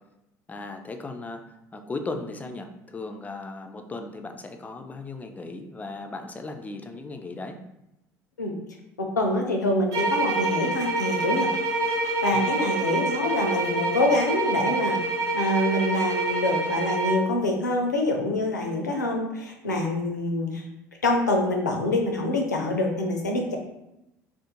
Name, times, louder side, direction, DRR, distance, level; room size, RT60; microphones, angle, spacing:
voice 1, 0.5-7.6 12.3-12.6, left 3 dB, 15° left, 5 dB, 0.3 m, -37 dB
voice 2, 9.2-11.5 12.2-15.0 15.3-20.6 21.0-23.6, left 1 dB, 90° left, 2 dB, 0.4 m, -25 dB
sound 1, 9.9-17.3, right 2 dB, 55° right, 0.8 m, -26 dB
2.4 x 2.0 x 2.9 m, 0.89 s
hypercardioid pair, 65°, 9 cm